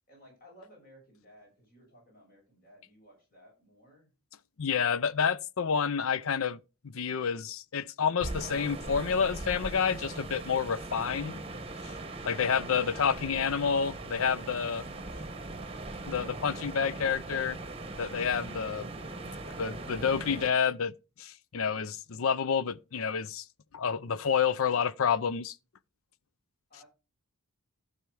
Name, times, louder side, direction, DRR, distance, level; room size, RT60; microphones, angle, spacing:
voice 1, 0.1-4.1 26.7-26.9, equal, 40° left, 6.4 m, -57 dB
voice 2, 4.6-11.4 12.2-14.8 16.1-17.6 18.0-18.9 19.6-23.4 23.7-25.6, left 6 dB, 65° left, 0.6 m, -29 dB
sound 1, 8.2-20.5, right 2 dB, 25° right, 1.1 m, -40 dB
12.5 x 5.6 x 4.9 m
head